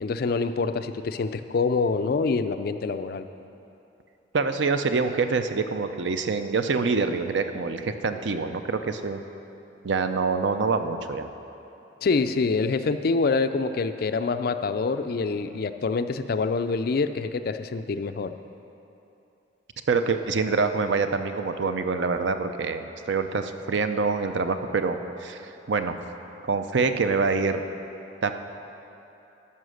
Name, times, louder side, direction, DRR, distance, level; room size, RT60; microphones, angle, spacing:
voice 1, 0.0-3.3 12.0-18.3, left 4 dB, 55° left, 9 dB, 0.4 m, -26 dB
voice 2, 4.3-9.2 9.8-11.3 19.9-25.4 25.7-26.0 26.5-27.6 28.2-28.3, right 4 dB, 85° right, 8 dB, 0.6 m, -25 dB
13.0 x 5.7 x 6.4 m, 2.9 s
head